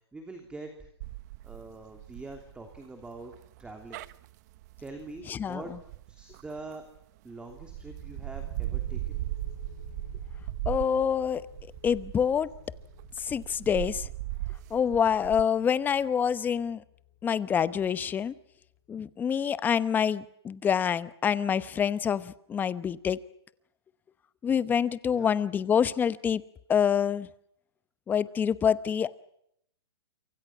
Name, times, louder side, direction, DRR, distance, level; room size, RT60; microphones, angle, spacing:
voice 1, 0.1-0.9 1.4-3.3 3.6-4.0 4.8-5.7 6.1-6.8 7.2-9.2 25.1-25.3, right 3 dB, 5° right, 5 dB, 3.0 m, -44 dB
sound 1, 1.0-7.0 7.5-15.4, right 18 dB, 40° right, 1.0 m, -38 dB
voice 2, 5.3-5.6 10.7-11.4 11.8-12.5 13.2-14.1 14.7-16.8 17.2-18.3 18.9-23.2 24.4-26.4 26.7-27.3 28.1-29.2, left 7 dB, 15° left, 16 dB, 0.9 m, -26 dB
sound 2, 7.5-19.0, left 12 dB, 45° left, 3.5 m, -53 dB
28.5 x 25.5 x 6.0 m, 0.75 s
hypercardioid pair, 145°, 14 cm